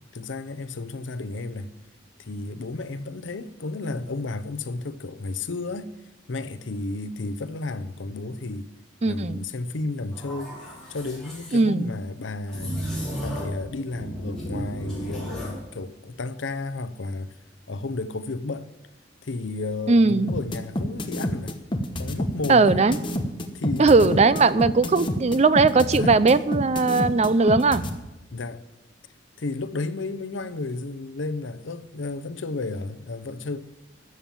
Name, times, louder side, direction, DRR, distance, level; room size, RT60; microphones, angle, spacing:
voice 1, 0.1-1.7 2.2-5.9 6.3-8.7 9.0-10.6 10.9-12.8 13.2-17.4 17.7-18.7 19.2-21.6 22.0-22.9 23.5-24.3 25.9-26.1 28.3-28.6 29.4-33.6, left 3 dB, 75° left, 0.7 m, -32 dB
voice 2, 9.0-9.4 11.5-11.9 19.9-20.4 22.5-23.0 23.8-27.8, right 3 dB, 35° right, 0.5 m, -19 dB
sound 1, 10.1-11.6 12.5-13.6 13.9-15.6, equal, 5° left, 4.8 m, -34 dB
sound 2, 20.3-27.9, left 1 dB, 25° left, 1.1 m, -27 dB
13.0 x 7.3 x 8.9 m
head